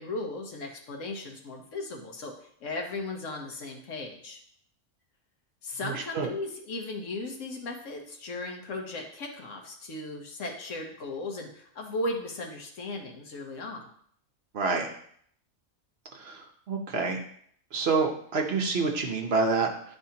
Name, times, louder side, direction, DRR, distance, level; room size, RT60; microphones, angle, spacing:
voice 1, 0.0-2.3 2.6-4.4 5.6-13.9, left 2 dB, 70° left, 1 dB, 1.3 m, -36 dB
voice 2, 5.8-6.3 14.5-14.9 16.1-17.2 17.7-20.0, right 4 dB, 55° right, 2 dB, 0.9 m, -28 dB
10.0 x 3.4 x 2.8 m, 0.64 s
omnidirectional pair, 1.3 m